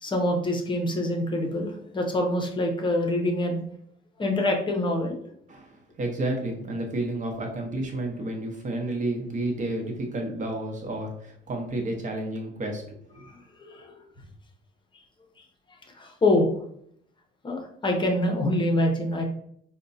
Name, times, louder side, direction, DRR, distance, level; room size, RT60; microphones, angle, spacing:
voice 1, 0.0-3.6 4.2-5.2 13.2-13.9 16.0-16.5 17.4-19.2, left 1 dB, 25° left, 2 dB, 0.7 m, -25 dB
voice 2, 5.5-13.0, right 1 dB, 40° right, 1 dB, 0.9 m, -31 dB
4.2 x 2.2 x 2.6 m, 0.67 s
cardioid pair, 120°, 20 cm